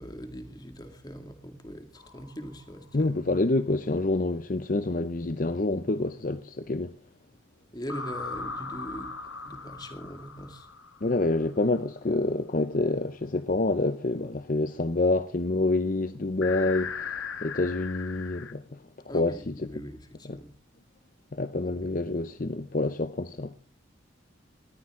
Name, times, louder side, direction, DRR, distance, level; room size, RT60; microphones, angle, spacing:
voice 1, 0.0-3.1 7.7-9.1 9.4-10.7 19.1-20.5 21.6-21.8, equal, 20° left, 2.2 m, -41 dB
sound 1, 2.0-2.8 7.9-11.6 16.4-18.5, left 5 dB, 85° left, 1.7 m, -38 dB
voice 2, 2.9-6.9 11.0-18.6 19.1-19.7 20.3-20.4 21.3-23.5, left 2 dB, 40° left, 0.6 m, -27 dB
19.5 x 14.0 x 3.7 m
head